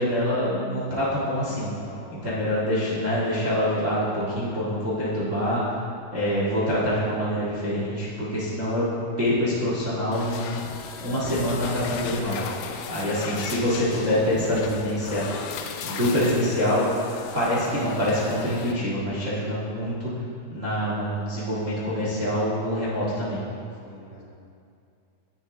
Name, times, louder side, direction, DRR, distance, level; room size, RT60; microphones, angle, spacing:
voice 1, 0.0-1.7 2.2-5.6 6.1-8.9 9.2-10.6 11.0-12.4 12.9-15.2 15.8-16.8 17.3-20.1 20.5-23.4, equal, 35° right, -8 dB, 1.2 m, -25 dB
voice 2, 1.1-2.1 23.8-24.2, left 1 dB, 65° left, -4 dB, 2.7 m, -45 dB
sound 1, 10.1-18.7, left 6 dB, 85° left, 1.9 m, -36 dB
10.5 x 9.7 x 3.5 m, 2.4 s
omnidirectional pair, 4.2 m